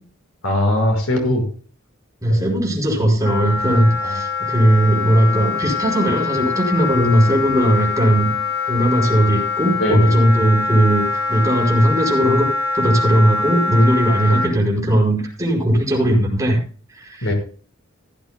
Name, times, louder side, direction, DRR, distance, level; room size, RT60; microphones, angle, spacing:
voice 1, 0.4-1.5 2.3-2.5 4.0-4.2 9.8-10.3 14.3-14.4 17.2-17.3, left 1 dB, 85° left, 3 dB, 5.1 m, -21 dB
voice 2, 2.2-8.3 8.7-12.5 12.7-16.6 16.9-17.3, right 1 dB, 15° right, -1 dB, 5.5 m, -17 dB
Wind instrument woodwind instrument, 3.2-14.5, left 4 dB, 20° left, 2.5 m, -24 dB
16.0 x 14.5 x 2.2 m, 0.42 s
head